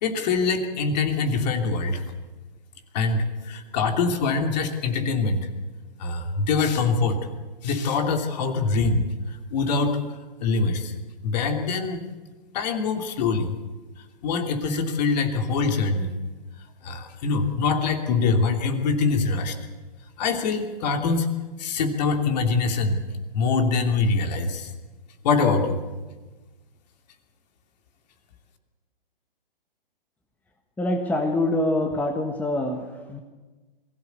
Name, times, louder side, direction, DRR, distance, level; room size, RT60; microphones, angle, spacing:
voice 1, 0.0-2.0 2.9-5.5 6.0-7.2 7.6-9.1 9.5-10.0 10.4-10.9 11.2-12.0 12.5-13.6 14.2-16.1 16.8-19.5 20.2-21.3 21.6-23.0 23.3-24.7 25.2-25.8, left 4 dB, 45° left, 5 dB, 3.0 m, -24 dB
voice 2, 30.8-33.2, left 1 dB, 5° left, 3 dB, 1.4 m, -25 dB
22.0 x 16.5 x 8.3 m, 1.3 s
hypercardioid pair, 135°, 29 cm